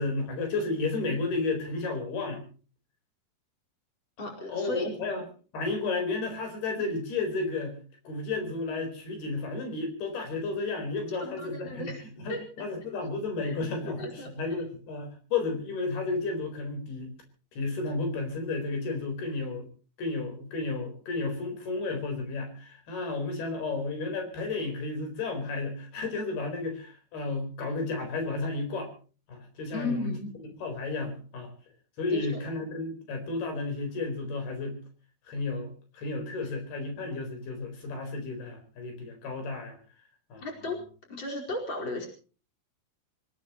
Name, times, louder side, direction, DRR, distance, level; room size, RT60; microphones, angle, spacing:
voice 1, 0.0-2.4 4.5-5.2 5.5-7.8 8.0-11.9 12.2-17.1 17.5-19.7 20.0-28.9 29.3-30.1 30.6-31.5 32.0-34.8 35.3-39.8 40.3-40.5, left 3 dB, 80° left, 4 dB, 6.3 m, -32 dB
voice 2, 4.2-4.9 11.3-12.0 12.3-12.4 13.4-13.6 13.9-14.3 29.7-30.3 32.1-32.4 40.4-40.8 41.1-42.1, left 2 dB, 30° left, 0 dB, 5.3 m, -35 dB
26.5 x 18.0 x 3.1 m, 0.38 s
omnidirectional pair, 4.4 m